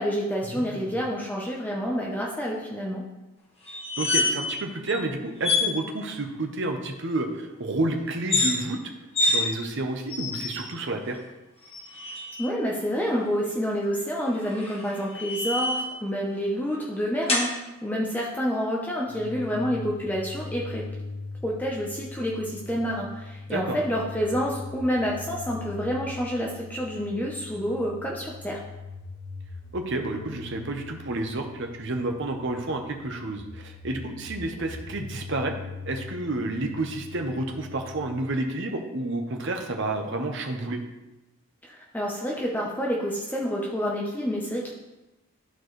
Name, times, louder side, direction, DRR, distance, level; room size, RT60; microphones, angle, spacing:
voice 1, 0.0-3.0 12.4-17.5 17.8-20.8 21.4-28.6 41.6-44.7, equal, 10° left, -3 dB, 0.7 m, -28 dB
voice 2, 0.5-0.9 4.0-8.8 9.3-11.2 23.5-23.8 29.7-35.6 35.9-40.8, right 2 dB, 55° right, 4 dB, 0.8 m, -30 dB
sound 1, 3.7-4.6 4.9-5.0 5.4-5.7 8.2-8.5 9.1-9.4 10.1-10.7 11.6-12.4 14.3-15.9 17.3-17.5, left 2 dB, 25° left, 1.2 m, -26 dB
sound 2, 19.1-38.3, left 3 dB, 50° left, 0.5 m, -41 dB
12.5 x 4.5 x 3.2 m, 1.0 s
head